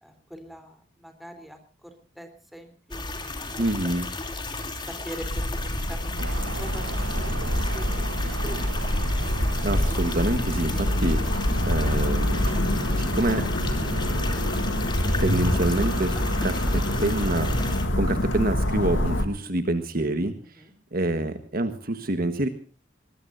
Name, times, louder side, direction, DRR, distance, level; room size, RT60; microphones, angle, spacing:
voice 1, 0.0-3.6 4.3-5.5 5.9-6.3 6.6-8.7 20.4-20.7, equal, ahead, 6 dB, 3.7 m, -43 dB
sound 1, 2.9-17.9, left 3 dB, 25° left, 3.0 m, -35 dB
voice 2, 3.6-4.1 9.6-14.7 15.2-17.7 18.0-20.6 20.9-22.5, right 1 dB, 50° right, 9 dB, 1.4 m, -27 dB
sound 2, 5.2-19.3, left 1 dB, 75° left, 2.4 m, -26 dB
sound 3, 6.2-17.8, right 3 dB, 90° right, 1.2 m, -38 dB
23.0 x 20.0 x 2.7 m, 0.39 s
head